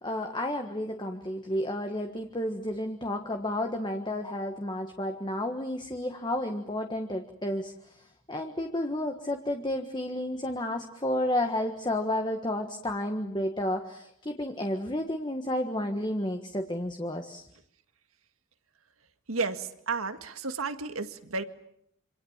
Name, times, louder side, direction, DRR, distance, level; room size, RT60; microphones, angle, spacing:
voice 1, 0.0-17.5, left 1 dB, 20° left, 5 dB, 1.5 m, -31 dB
voice 2, 19.3-21.4, right 4 dB, 90° right, 9 dB, 1.9 m, -32 dB
27.5 x 26.0 x 7.3 m, 0.74 s
head